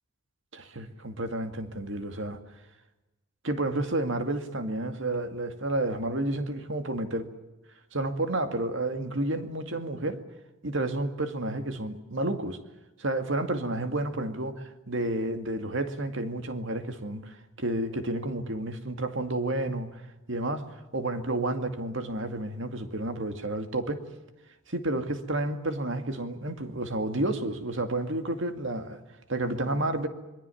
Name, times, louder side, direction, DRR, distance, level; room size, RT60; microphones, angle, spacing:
voice 1, 0.5-2.4 3.4-7.3 7.9-10.2 10.6-12.6 13.0-20.0 20.3-24.0 24.7-29.0 29.3-30.1, right 2 dB, 60° right, 2.3 m, -31 dB
26.5 x 23.0 x 7.2 m
head